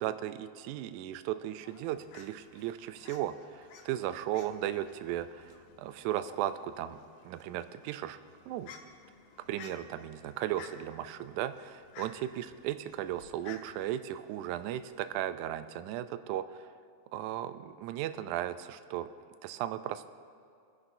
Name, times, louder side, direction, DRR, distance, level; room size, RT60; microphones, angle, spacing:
voice 1, 0.0-5.4 5.8-7.0 7.2-8.2 8.5-8.7 9.5-16.6 17.1-19.1 19.4-20.1, right 12 dB, 85° right, 11 dB, 1.8 m, -36 dB
Fowl, 1.5-15.2, left 5 dB, 85° left, 2.8 m, -55 dB
21.0 x 11.0 x 2.7 m, 2.5 s
omnidirectional pair, 4.0 m